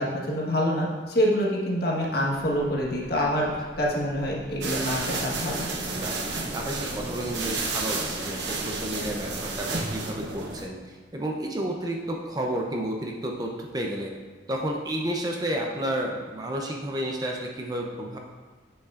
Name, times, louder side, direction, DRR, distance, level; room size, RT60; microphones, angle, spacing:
voice 1, 0.0-3.5 3.8-5.6, equal, 55° left, -3 dB, 1.3 m, -26 dB
sound 1, 2.3-9.6, right 1 dB, 75° left, 1.9 m, -44 dB
sound 2, 4.6-10.6, right 3 dB, 75° right, 0.8 m, -31 dB
voice 2, 6.5-14.1 14.5-18.2, right 1 dB, 20° right, 0 dB, 0.5 m, -31 dB
8.2 x 6.4 x 2.5 m, 1.4 s
head